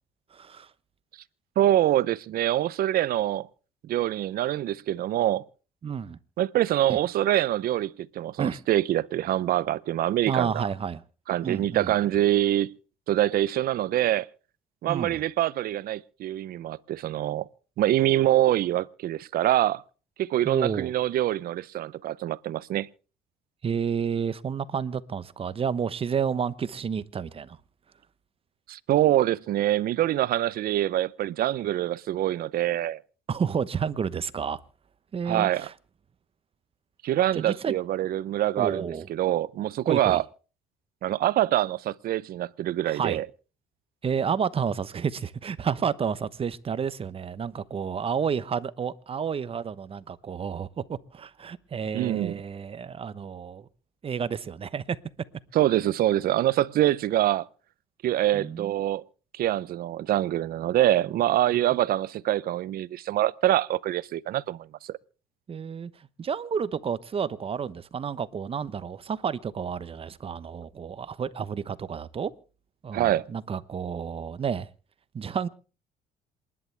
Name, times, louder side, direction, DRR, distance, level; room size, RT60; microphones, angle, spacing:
voice 1, 0.3-0.7 5.8-6.2 6.9-7.0 8.4-8.6 10.3-11.0 11.4-11.9 14.9-15.2 20.4-20.9 23.6-27.6 33.3-34.6 35.1-35.7 37.3-37.8 38.6-39.1 39.9-40.2 42.8-43.2 44.0-53.7 54.0-55.0 58.3-58.8 61.5-61.6 65.5-65.9 66.2-72.3 72.8-74.7 75.1-75.5, right 7 dB, 35° right, 1.0 m, -30 dB
voice 2, 1.6-3.5 3.8-5.4 6.4-10.7 11.3-12.7 13.1-14.3 14.8-17.5 17.8-19.8 20.2-22.9 28.7-33.0 35.3-35.7 37.0-40.2 41.0-43.3 51.9-52.4 55.5-57.5 58.0-59.0 59.3-65.0 72.9-73.3, right 13 dB, 60° right, 0.7 m, -25 dB
28.0 x 11.0 x 3.4 m
cardioid pair, 110°, 17 cm